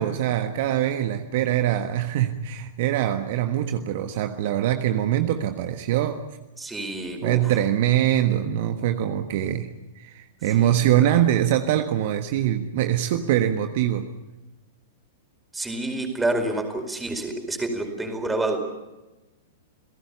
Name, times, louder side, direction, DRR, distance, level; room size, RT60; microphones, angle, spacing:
voice 1, 0.0-6.2 7.2-9.7 10.0-14.1, right 11 dB, 50° right, 7 dB, 1.4 m, -23 dB
voice 2, 6.6-7.5 10.6-10.8 11.1-11.2 15.5-18.6, right 2 dB, 10° right, 4 dB, 4.7 m, -28 dB
30.0 x 17.5 x 6.9 m, 1.1 s
figure-of-eight pair, 100°, 0 cm